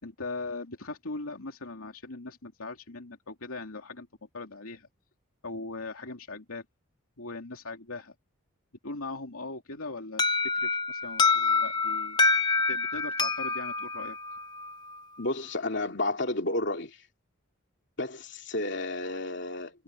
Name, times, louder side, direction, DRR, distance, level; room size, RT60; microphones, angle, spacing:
voice 1, 0.0-4.1 4.3-4.9 5.4-6.6 7.2-8.1 8.8-10.2 10.6-12.2 12.7-14.2, left 3 dB, 85° left, 2.8 m, -39 dB
Alarm, 10.2-15.0, left 4 dB, 20° left, 0.9 m, -27 dB
voice 2, 15.2-17.0 18.0-19.8, left 2 dB, 55° left, 3.0 m, -31 dB
head